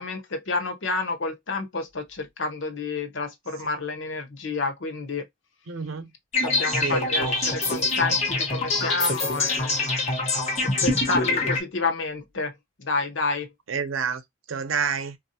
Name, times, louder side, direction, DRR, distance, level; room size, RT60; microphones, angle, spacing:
voice 1, 0.0-5.3 6.4-9.9 10.6-13.5, left 3 dB, 70° left, 0.8 m, -29 dB
voice 2, 5.7-6.1 6.6-7.5 13.7-14.2 14.5-15.2, right 6 dB, 85° right, 0.6 m, -29 dB
sound 1, 6.3-11.6, left 2 dB, 35° left, 1.1 m, -25 dB
3.4 x 2.5 x 2.7 m
head